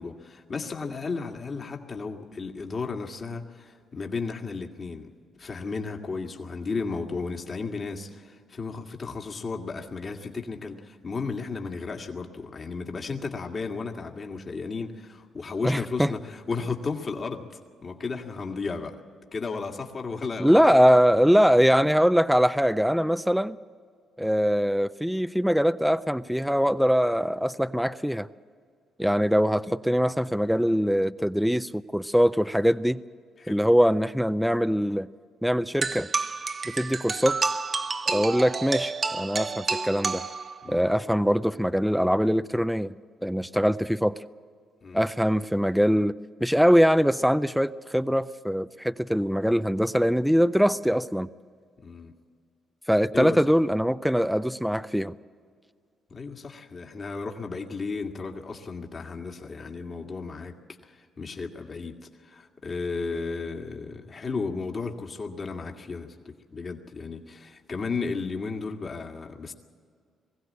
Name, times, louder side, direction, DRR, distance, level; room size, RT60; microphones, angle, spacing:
voice 1, 0.0-5.1 5.4-19.0 19.3-20.9 33.4-33.7 40.6-40.9 44.8-45.0 51.8-52.1 53.1-53.4 56.1-61.9 62.2-69.5, left 4 dB, 40° left, 2 dB, 1.9 m, -34 dB
voice 2, 15.6-16.1 20.4-23.6 24.2-28.3 29.0-33.0 33.5-35.1 35.4-36.1 36.7-37.4 38.1-40.2 40.7-42.9 43.2-44.2 44.9-46.1 46.4-51.3 52.9-55.1, equal, ahead, 12 dB, 0.5 m, -22 dB
sound 1, 35.8-40.8, right 4 dB, 40° right, 0.9 m, -30 dB
21.0 x 16.0 x 8.5 m, 2.1 s
cardioid pair, 90°, 0 cm